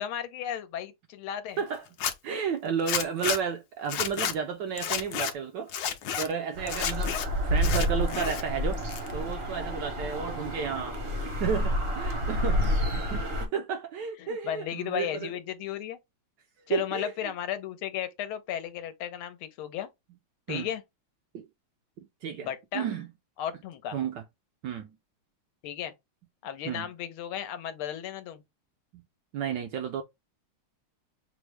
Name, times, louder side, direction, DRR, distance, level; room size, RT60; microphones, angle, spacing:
voice 1, 0.0-1.6 12.6-12.7 14.2-16.0 16.7-19.9 20.5-20.8 22.4-22.8 23.4-24.0 25.6-25.9 26.4-28.4, left 10 dB, 85° left, 1.5 m, -34 dB
Zipper (clothing), 1.9-2.1 2.9-3.4 3.9-4.3 4.8-5.3 5.7-6.3 6.7-7.3 7.6-8.4 8.7-9.3, left 8 dB, 70° left, 1.2 m, -30 dB
voice 2, 2.2-5.7 6.2-7.2 7.4-8.8 9.1-11.0 11.3-15.3 16.7-17.1 20.5-20.7 21.3-21.5 22.0-23.1 23.9-24.2 24.6-25.0 26.6-26.9 28.9-29.0 29.3-30.0, right 7 dB, 75° right, 1.0 m, -32 dB
sound 1, 6.6-13.5, equal, 50° right, 0.7 m, -29 dB
6.0 x 2.0 x 3.2 m
omnidirectional pair, 2.3 m